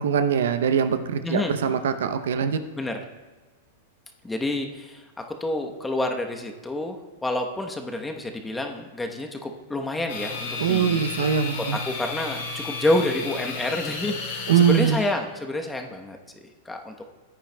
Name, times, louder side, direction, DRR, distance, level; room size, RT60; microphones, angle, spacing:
voice 1, 0.0-2.6 10.6-11.8 14.5-15.0, right 7 dB, 80° right, 10 dB, 0.6 m, -22 dB
voice 2, 2.8-3.1 4.2-11.3 11.5-17.0, left 1 dB, 10° left, 3 dB, 0.9 m, -29 dB
sound 1, 10.1-15.1, left 5 dB, 70° left, 2.4 m, -33 dB
15.0 x 9.0 x 2.2 m, 1.3 s
hypercardioid pair, 120°, 0 cm